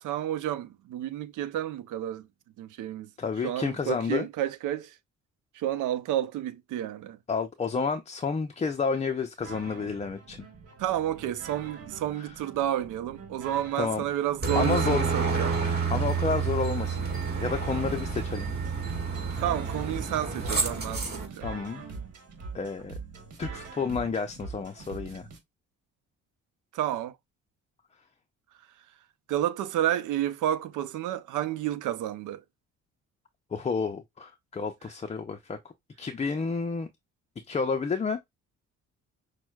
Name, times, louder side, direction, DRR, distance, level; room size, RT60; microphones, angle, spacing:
voice 1, 0.0-2.3 2.6-3.1 3.4-5.0 5.5-7.2 10.8-15.6 19.4-21.5 26.7-27.1 29.3-32.4, right 12 dB, 80° right, 0.6 m, -30 dB
voice 2, 3.2-4.3 7.3-10.4 12.2-12.3 13.8-14.0 14.5-15.0 15.9-17.1 17.4-18.5 21.4-21.8 22.5-23.0 23.4-25.3 33.5-35.6 36.0-36.9 37.5-38.2, left 5 dB, 25° left, 0.4 m, -30 dB
sound 1, 9.4-25.4, right 4 dB, 55° right, 1.4 m, -43 dB
Aircraft, 14.4-21.3, right 5 dB, 35° right, 1.8 m, -29 dB
6.0 x 2.1 x 2.3 m
cardioid pair, 90°, 30 cm